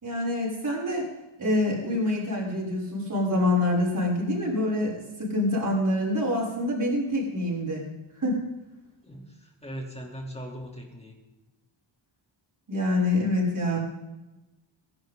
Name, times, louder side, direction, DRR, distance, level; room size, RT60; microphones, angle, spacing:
voice 1, 0.0-1.1 1.4-7.8 8.2-8.4 12.7-13.8, left 1 dB, 40° right, -4 dB, 6.7 m, -26 dB
voice 2, 9.0-11.1, equal, 10° left, 1 dB, 3.2 m, -39 dB
23.0 x 11.5 x 3.9 m, 1.0 s
wide cardioid pair, 170°, 49 cm